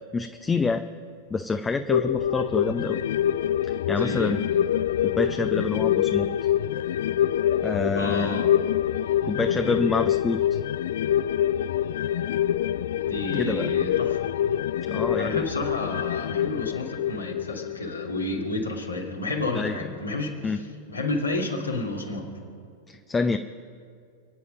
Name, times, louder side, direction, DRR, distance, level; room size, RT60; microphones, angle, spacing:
voice 1, 0.1-0.8 1.3-3.0 3.6-4.4 5.0-6.3 7.6-8.4 9.2-10.4 13.3-13.7 14.9-15.4 19.5-19.8 20.4-20.6 22.9-23.4, left 4 dB, 15° left, 7 dB, 0.7 m, -27 dB
sound 1, 1.9-18.7 19.0-19.1, left 10 dB, 60° left, 0.3 m, -26 dB
voice 2, 4.0-4.4 8.0-8.6 13.1-14.3 15.2-22.3, left 2 dB, 80° left, -1 dB, 2.8 m, -31 dB
28.5 x 9.7 x 5.2 m, 2.3 s
figure-of-eight pair, 90°, 0 cm